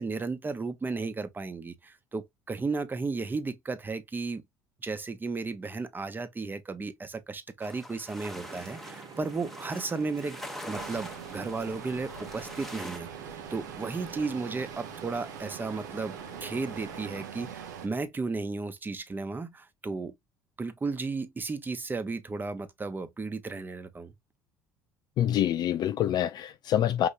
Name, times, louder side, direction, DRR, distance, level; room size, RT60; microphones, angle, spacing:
voice 1, 0.0-4.4 4.8-10.4 10.7-16.1 16.4-20.2 20.6-24.1, right 3 dB, 20° right, 0.9 m, -34 dB
sound 1, 7.6-13.0, left 1 dB, 5° left, 0.9 m, -44 dB
sound 2, 8.3-17.3, right 6 dB, 50° right, 1.2 m, -47 dB
sound 3, 10.7-17.9, right 7 dB, 85° right, 0.8 m, -43 dB
voice 2, 25.2-27.1, left 11 dB, 50° left, 0.4 m, -26 dB
5.3 x 2.9 x 2.5 m
hypercardioid pair, 65°, 9 cm